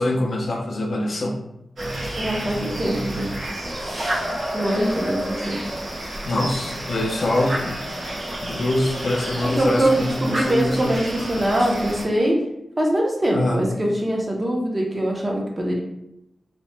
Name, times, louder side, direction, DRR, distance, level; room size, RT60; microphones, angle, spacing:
voice 1, 0.0-1.4 6.3-7.8 8.4-10.9 13.3-13.7, left 1 dB, 50° left, 1 dB, 0.4 m, -24 dB
sound 1, 1.8-12.0, right 1 dB, 75° right, 0.9 m, -30 dB
voice 2, 2.2-3.3 4.5-5.6 9.6-12.4 12.8-15.8, right 1 dB, 25° right, -1 dB, 0.5 m, -23 dB
2.8 x 2.1 x 3.1 m, 0.83 s
wide cardioid pair, 155°, 0 cm